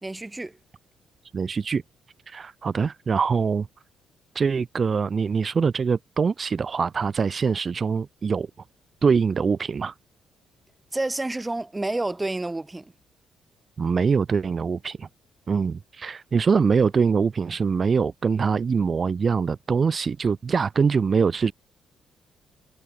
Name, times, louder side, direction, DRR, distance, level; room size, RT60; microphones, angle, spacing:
voice 1, 0.0-0.6 10.9-12.9, right 2 dB, 10° right, 2.5 m, -29 dB
voice 2, 1.3-1.8 2.3-3.7 4.3-8.5 9.0-9.9 13.8-15.1 15.5-21.5, right 5 dB, 30° right, 0.6 m, -23 dB
cardioid pair, 145°, 0 cm